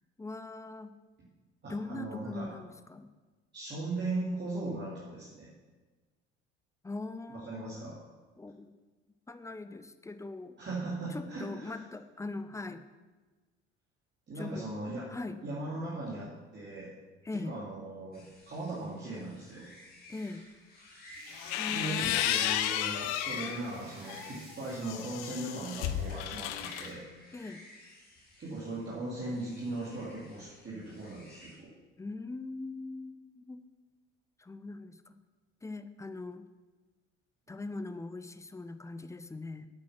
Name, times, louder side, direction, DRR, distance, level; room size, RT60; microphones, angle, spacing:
voice 1, 0.2-0.9 1.7-3.1 6.8-7.9 8.4-8.7 9.3-10.6 11.1-12.8 14.3-14.7 15.1-15.4 17.2-17.5 20.1-20.4 21.6-22.2 27.3-27.6 32.0-33.6 34.4-35.2 35.6-36.5 37.5-39.7, left 3 dB, 10° left, 11 dB, 0.6 m, -41 dB
voice 2, 1.6-2.5 3.5-5.5 7.3-8.0 10.6-11.8 14.3-15.1 15.4-16.9 17.3-19.7 21.7-27.0 28.4-31.7, right 2 dB, 30° right, -7 dB, 3.0 m, -38 dB
sound 1, 18.1-31.6, left 1 dB, 25° left, 3.4 m, -54 dB
sound 2, 21.1-26.9, right 2 dB, 75° right, 3.7 m, -54 dB
sound 3, 21.3-23.6 24.1-26.9, left 11 dB, 55° left, 0.8 m, -33 dB
8.8 x 8.5 x 6.0 m, 1.3 s
figure-of-eight pair, 60°, 35 cm